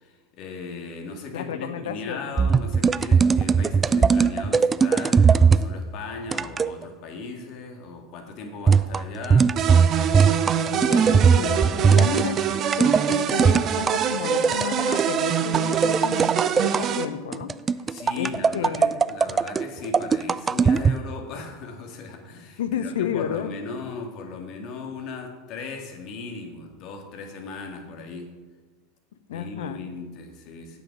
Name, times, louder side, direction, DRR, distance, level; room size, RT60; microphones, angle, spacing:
voice 1, 0.0-9.6 17.9-28.3 29.3-30.8, left 4 dB, 50° left, 3 dB, 2.0 m, -37 dB
voice 2, 1.3-2.4 10.7-12.4 12.8-16.3 16.6-17.5 18.1-18.9 22.6-23.5 29.3-29.8, left 8 dB, 70° left, 12 dB, 0.7 m, -31 dB
sound 1, 2.4-5.7 6.3-6.8 8.7-14.0 14.4-15.1 15.5-16.8 17.3-21.0, right 6 dB, 20° right, 0.3 m, -19 dB
sound 2, 9.6-17.1, right 8 dB, 40° right, 0.8 m, -25 dB
8.9 x 8.1 x 5.2 m, 1.3 s
hypercardioid pair, 85°, 0 cm